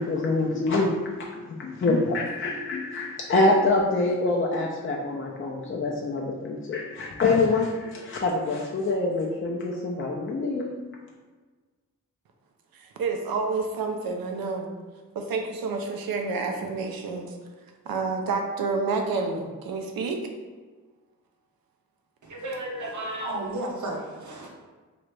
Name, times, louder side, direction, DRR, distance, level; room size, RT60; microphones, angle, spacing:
voice 1, 0.0-10.7, left 2 dB, 35° left, -2 dB, 0.5 m, -25 dB
voice 2, 12.7-14.7 15.1-17.4 17.9-20.2, right 4 dB, 80° right, 3 dB, 0.6 m, -29 dB
voice 3, 22.2-24.5, right 1 dB, 55° right, -1 dB, 0.8 m, -33 dB
3.0 x 2.5 x 3.1 m, 1.4 s
cardioid pair, 45°, 35 cm